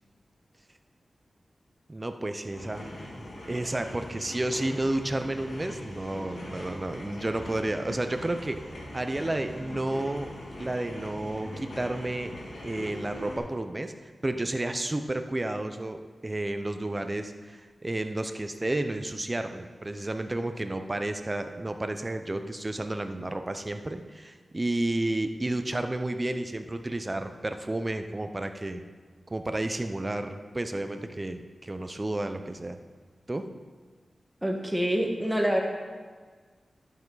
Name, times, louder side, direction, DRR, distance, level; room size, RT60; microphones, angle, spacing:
voice 1, 1.9-2.9 3.2-8.6 8.9-12.3 12.6-28.8 29.3-32.8 33.3-33.5, right 1 dB, 30° right, 7 dB, 0.7 m, -31 dB
sound 1, 2.4-13.4, left 1 dB, 70° left, 1.9 m, -42 dB
voice 2, 34.4-35.6, equal, 5° right, 1 dB, 1.5 m, -26 dB
11.0 x 7.1 x 4.0 m, 1.5 s
cardioid pair, 60°, 0 cm